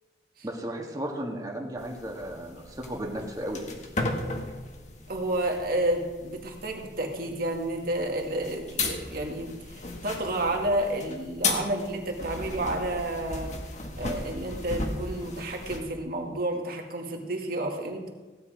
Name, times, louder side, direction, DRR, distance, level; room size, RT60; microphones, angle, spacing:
voice 1, 0.4-3.6, right 1 dB, 20° right, 0 dB, 1.8 m, -34 dB
sound 1, 1.8-15.8, left 3 dB, 40° left, 1.7 m, -36 dB
voice 2, 5.1-13.5 14.0-18.1, right 1 dB, 55° right, 1 dB, 2.2 m, -30 dB
16.0 x 10.0 x 5.1 m, 1.3 s
head